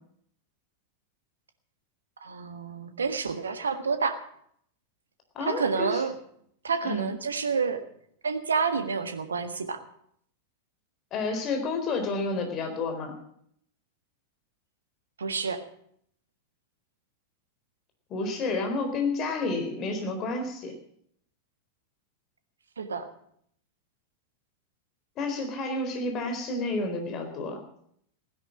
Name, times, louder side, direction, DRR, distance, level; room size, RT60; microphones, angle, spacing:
voice 1, 2.2-4.2 5.4-6.2 6.6-7.8 8.2-9.8 15.2-15.6 22.8-23.1, right 5 dB, 70° right, 9 dB, 1.5 m, -29 dB
voice 2, 5.3-6.0 6.8-7.1 11.1-13.1 18.1-20.8 25.2-27.6, left 3 dB, 35° left, 4 dB, 4.0 m, -30 dB
16.0 x 10.5 x 7.3 m, 0.66 s
figure-of-eight pair, 90°, 0 cm